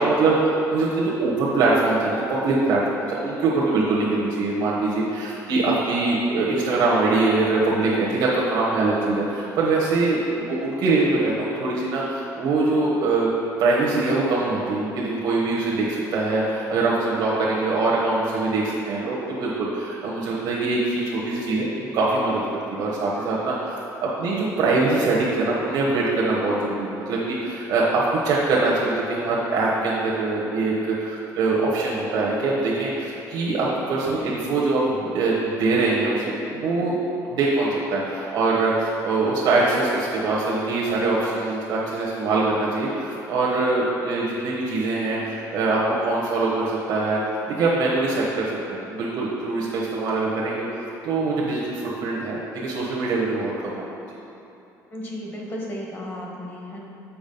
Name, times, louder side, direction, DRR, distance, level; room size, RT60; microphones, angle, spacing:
voice 1, 0.0-13.3 13.6-21.7 21.9-22.4 22.7-37.0 37.2-47.2 47.5-50.7 51.0-53.9, right 3 dB, 65° right, -5 dB, 1.1 m, -23 dB
voice 2, 54.9-56.8, equal, 35° left, -2 dB, 1.3 m, -34 dB
7.0 x 5.0 x 5.4 m, 2.8 s
cardioid pair, 155°, 7 cm